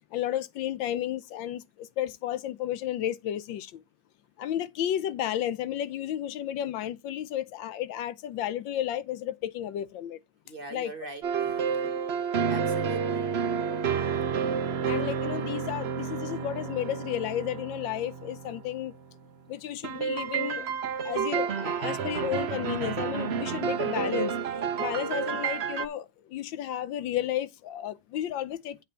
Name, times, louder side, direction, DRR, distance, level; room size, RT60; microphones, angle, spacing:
voice 1, 0.1-3.8 4.4-10.2 10.7-10.9 14.9-18.9 19.5-20.7 21.0-24.4 24.8-28.8, left 11 dB, 85° left, 1.5 m, -32 dB
voice 2, 10.4-11.9 12.5-13.3, right 3 dB, 30° right, 1.3 m, -43 dB
sound 1, 11.2-19.0 19.8-25.9, right 7 dB, 55° right, 0.7 m, -30 dB
8.5 x 4.2 x 6.7 m
omnidirectional pair, 2.0 m